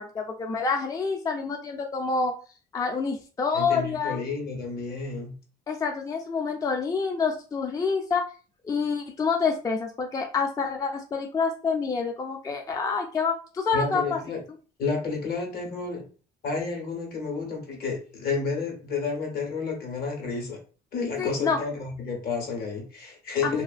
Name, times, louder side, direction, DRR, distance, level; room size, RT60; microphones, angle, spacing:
voice 1, 0.0-2.3 2.7-4.2 5.7-8.2 8.6-14.2 21.2-21.6 23.4-23.6, left 5 dB, 20° left, 3 dB, 0.3 m, -27 dB
voice 2, 3.5-5.4 13.7-14.4 14.8-16.1 16.4-20.6 20.9-23.6, left 4 dB, 65° left, 1 dB, 1.1 m, -31 dB
2.4 x 2.3 x 2.4 m, 0.38 s
cardioid pair, 110°, 17 cm